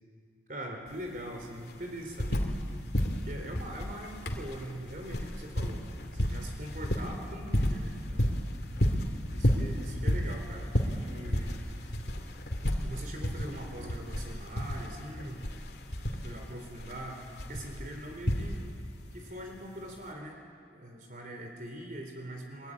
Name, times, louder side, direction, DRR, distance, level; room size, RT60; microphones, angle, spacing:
voice 1, 0.5-2.5 3.3-5.8 6.1-8.4 9.3-11.6 12.8-15.5 16.1-18.6 19.1-20.4 20.7-22.7, right 1 dB, 50° right, 3 dB, 3.6 m, -42 dB
sound 1, 0.9-1.0 1.2-2.7 2.9-18.9 20.0-20.1, equal, 65° left, 2.7 m, -31 dB
23.5 x 23.0 x 9.8 m, 2.2 s
head